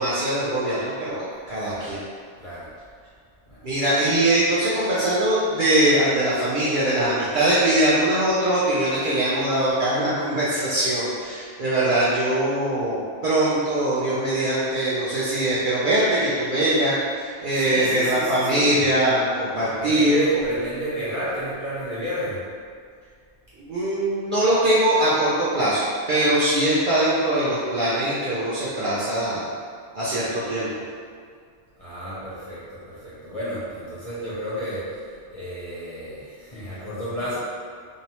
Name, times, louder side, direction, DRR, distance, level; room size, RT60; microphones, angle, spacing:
voice 1, 0.0-2.0 3.6-20.2 23.6-25.8 26.1-29.5 29.9-30.7, right 1 dB, 60° right, -10 dB, 0.5 m, -22 dB
voice 2, 1.3-2.0 2.4-2.7 3.5-3.6 17.5-18.8 19.7-22.4 31.8-35.0 35.3-37.4, right 1 dB, 35° left, -11 dB, 0.6 m, -31 dB
2.7 x 2.0 x 2.8 m, 2.1 s
omnidirectional pair, 1.2 m